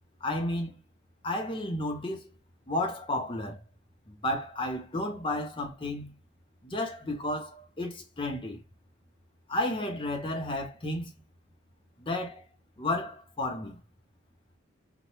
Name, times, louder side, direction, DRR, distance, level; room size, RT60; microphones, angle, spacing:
voice 1, 0.2-0.8 1.2-2.2 2.7-3.6 4.1-6.2 6.6-8.6 9.5-11.1 12.0-12.4 12.8-13.8, left 1 dB, 25° left, 0.6 m, -32 dB
2.9 x 2.1 x 3.0 m
head